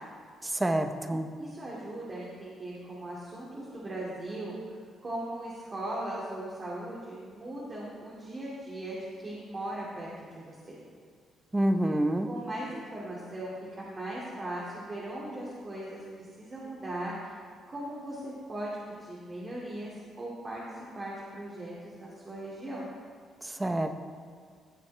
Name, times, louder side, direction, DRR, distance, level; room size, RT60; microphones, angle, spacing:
voice 1, 0.4-1.3 11.5-12.3 23.4-23.9, right 1 dB, 15° right, 7 dB, 0.8 m, -27 dB
voice 2, 1.4-4.5 5.0-10.8 12.3-17.1 17.7-20.6 21.0-22.9, right 1 dB, 35° right, -6 dB, 2.4 m, -38 dB
16.5 x 7.1 x 3.4 m, 2.1 s
cardioid pair, 90°, 0 cm